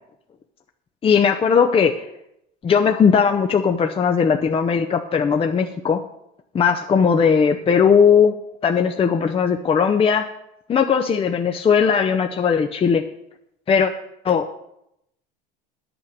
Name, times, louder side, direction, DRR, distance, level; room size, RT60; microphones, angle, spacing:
voice 1, 1.0-2.0 2.6-6.1 6.5-8.4 8.6-10.3 10.7-13.0 13.7-13.9 14.2-14.6, left 6 dB, 25° left, 6 dB, 0.7 m, -18 dB
9.8 x 8.7 x 6.6 m, 0.81 s
supercardioid pair, 110°, 21 cm